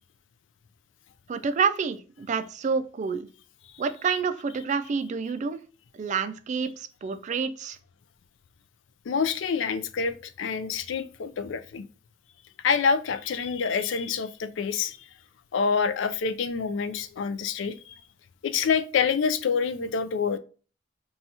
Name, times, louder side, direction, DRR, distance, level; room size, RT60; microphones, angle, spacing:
voice 1, 1.3-3.3 3.8-5.6 6.0-7.8, right 5 dB, 40° right, 0.3 m, -28 dB
voice 2, 9.1-11.8 12.6-15.0 15.5-17.9 18.4-20.4, left 6 dB, 70° left, 0.4 m, -27 dB
2.8 x 2.3 x 4.0 m
head